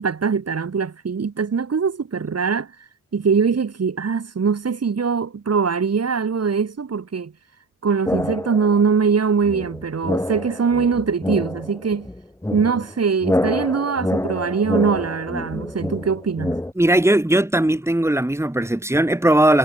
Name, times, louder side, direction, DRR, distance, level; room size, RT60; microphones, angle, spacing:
voice 1, 0.0-2.7 3.1-7.3 7.8-12.1 12.5-16.6, right 5 dB, 50° right, 5.2 m, -22 dB
sound 1, 8.0-8.9 9.4-16.7, left 1 dB, 10° left, 2.3 m, -27 dB
voice 2, 16.8-19.6, right 1 dB, 10° right, 4.0 m, -18 dB
wide cardioid pair, 110°, 31 cm